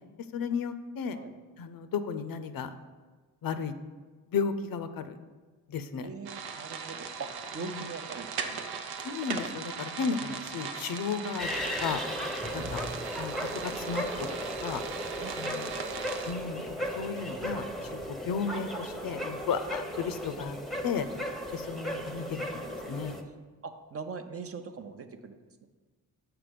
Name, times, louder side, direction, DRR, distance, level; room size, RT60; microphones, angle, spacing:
voice 1, 0.3-1.2 1.6-2.7 3.4-3.7 4.3-5.2 5.7-6.1 7.6-7.9 9.0-12.0 12.5-12.9 13.2-14.3 14.6-14.8 15.4-15.8 16.3-20.6 20.8-21.1 21.5-22.3 22.5-23.2, left 6 dB, 65° left, 11 dB, 0.6 m, -34 dB
voice 2, 6.0-8.7 12.5-12.7 15.2-15.9 23.6-25.7, right 4 dB, 40° right, 8 dB, 0.6 m, -42 dB
sound 1, 6.3-16.3, right 6 dB, 85° right, 0.7 m, -39 dB
sound 2, 11.4-23.2, equal, ahead, 0.8 m, -36 dB
5.9 x 4.5 x 5.1 m, 1.4 s
cardioid pair, 70°, 37 cm